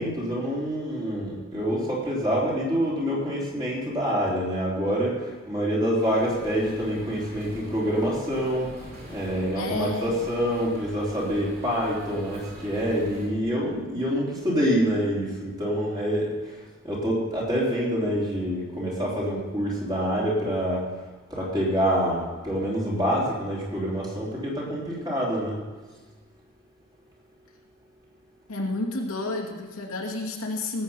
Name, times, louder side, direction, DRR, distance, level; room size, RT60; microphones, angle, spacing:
voice 1, 0.0-20.8 21.3-25.6, equal, 20° right, -5 dB, 3.4 m, -26 dB
sound 1, 6.0-13.3, equal, 40° right, 3.6 m, -44 dB
voice 2, 9.6-10.3 28.5-30.8, left 2 dB, 75° left, -1 dB, 2.2 m, -30 dB
18.0 x 7.9 x 5.6 m, 1.3 s
head